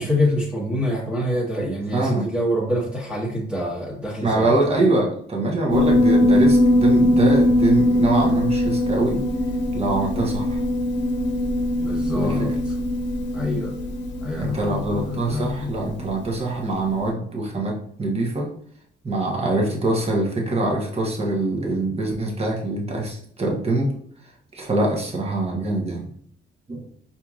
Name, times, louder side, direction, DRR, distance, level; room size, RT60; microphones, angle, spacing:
voice 1, 0.0-4.8 11.8-12.7 13.3-13.7 14.2-15.7, left 1 dB, 5° right, -5 dB, 1.3 m, -26 dB
voice 2, 1.9-2.3 4.2-9.2 9.7-10.6 12.1-12.5 14.4-18.5 19.0-23.9 24.2-26.1 26.7-26.8, right 2 dB, 30° right, -1 dB, 1.1 m, -24 dB
Piano, 5.7-16.4, left 1 dB, 65° left, 0.8 m, -21 dB
4.4 x 2.8 x 2.4 m, 0.63 s
cardioid pair, 90°, 20 cm